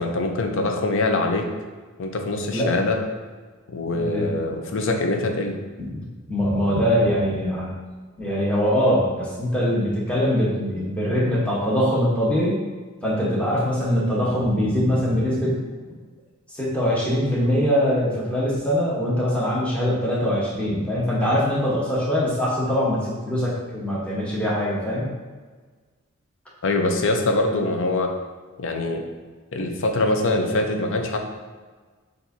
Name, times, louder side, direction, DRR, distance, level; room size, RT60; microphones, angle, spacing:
voice 1, 0.0-1.5 2.0-3.0 3.7-5.6 26.6-28.1 28.6-29.0 29.5-31.2, left 2 dB, 60° left, 4 dB, 0.6 m, -23 dB
voice 2, 3.9-4.3 5.8-7.7 8.2-12.6 13.0-15.5 16.5-25.1, equal, 5° left, -7 dB, 1.0 m, -22 dB
7.2 x 2.6 x 2.7 m, 1.4 s
head